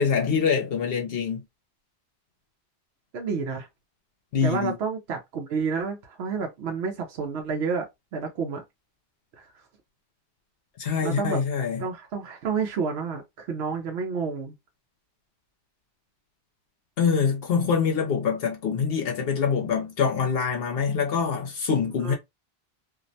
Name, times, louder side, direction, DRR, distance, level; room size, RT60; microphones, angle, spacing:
voice 1, 0.0-1.4 4.3-4.7 10.8-11.8 17.0-22.1, left 6 dB, 70° left, 0.8 m, -25 dB
voice 2, 3.1-3.7 4.4-8.6 9.4-9.6 11.0-11.4 11.8-14.5 22.0-22.1, right 5 dB, 85° right, 0.9 m, -30 dB
2.5 x 2.1 x 2.6 m
omnidirectional pair, 1.1 m